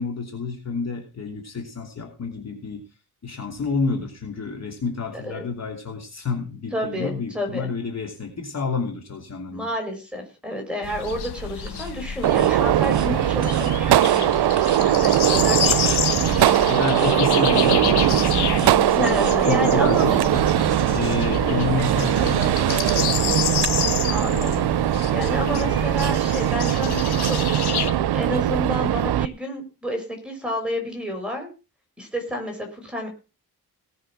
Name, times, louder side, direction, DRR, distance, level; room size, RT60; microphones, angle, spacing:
voice 1, 0.0-2.8 3.2-9.7 15.6-15.7 16.6-20.5 20.9-23.7, left 4 dB, 40° left, 1 dB, 2.9 m, -29 dB
voice 2, 6.7-7.7 9.5-17.2 18.9-20.2 21.4-21.6 24.1-24.7 25.1-31.5 32.0-33.1, equal, 5° right, 3 dB, 5.8 m, -30 dB
sound 1, 10.8-27.9, left 8 dB, 75° left, 1.4 m, -29 dB
sound 2, 11.7-11.9 12.2-12.5 12.8-13.1 13.4-14.2 14.6-14.8 15.1-15.4 15.7-16.0 16.3-16.6 16.9-17.2 17.4-18.8 19.0-19.3, right 6 dB, 45° right, 1.8 m, -37 dB
Gunshot gunfire, 12.2-29.2, right 12 dB, 85° right, 0.7 m, -20 dB
19.0 x 6.6 x 6.0 m, 0.33 s
wide cardioid pair, 155°, 39 cm